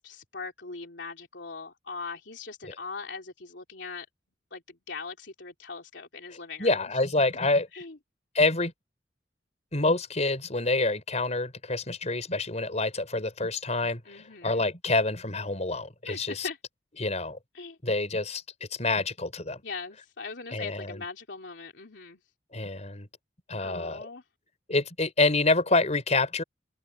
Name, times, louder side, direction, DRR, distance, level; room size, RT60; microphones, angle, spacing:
voice 1, 0.0-4.1 4.5-4.6 4.9-6.8 7.7-8.0 14.1-14.6 16.1-16.6 17.5-17.8 19.6-22.2 23.6-24.2, left 4 dB, 80° left, 3.2 m, -40 dB
voice 2, 6.6-7.7 8.3-8.7 9.7-16.5 17.0-17.4 17.8-19.6 20.5-21.0 22.5-23.1 23.5-24.1 24.7-26.4, left 2 dB, 40° left, 4.9 m, -27 dB
open air
head